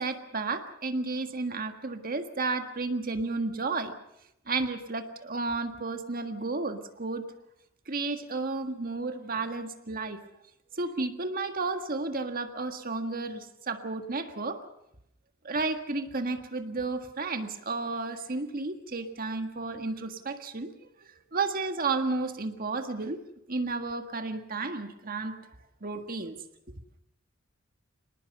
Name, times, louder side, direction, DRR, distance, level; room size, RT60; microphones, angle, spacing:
voice 1, 0.0-3.9 4.5-7.2 7.9-10.2 10.7-14.6 15.4-20.7 21.3-23.2 23.5-25.4 25.8-26.4, right 3 dB, 45° right, 7 dB, 1.7 m, -32 dB
25.5 x 19.5 x 6.8 m, 0.78 s
head